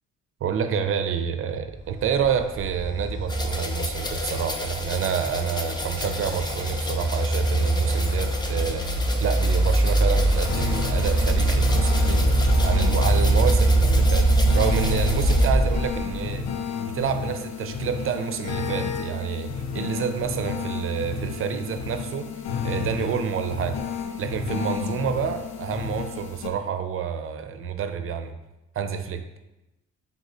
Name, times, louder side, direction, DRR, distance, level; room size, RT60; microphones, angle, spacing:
voice 1, 0.4-8.8 9.2-12.2 12.6-16.5 16.9-22.3 22.6-23.8 24.2-28.4 28.8-29.2, right 7 dB, 45° right, 8 dB, 0.4 m, -28 dB
sound 1, 2.0-16.5, right 1 dB, 15° right, 1.1 m, -23 dB
sound 2, 3.3-15.5, left 2 dB, 15° left, 0.4 m, -34 dB
sound 3, 10.5-26.5, left 6 dB, 65° left, 0.5 m, -32 dB
3.6 x 2.6 x 4.1 m, 0.97 s
cardioid pair, 90°, 30 cm